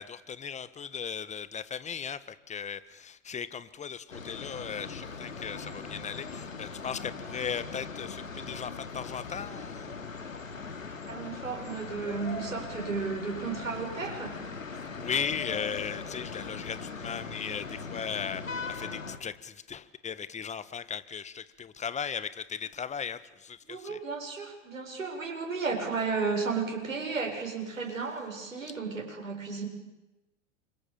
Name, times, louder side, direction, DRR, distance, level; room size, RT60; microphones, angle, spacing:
voice 1, 0.0-9.9 14.7-24.0, left 7 dB, 15° left, 14 dB, 1.6 m, -37 dB
sound 1, 4.1-19.2, left 4 dB, 90° left, 3.0 m, -40 dB
voice 2, 11.1-14.4 23.7-29.7, right 4 dB, 90° right, 1 dB, 7.7 m, -33 dB
29.0 x 26.0 x 7.2 m, 1.0 s
hypercardioid pair, 100°, 39 cm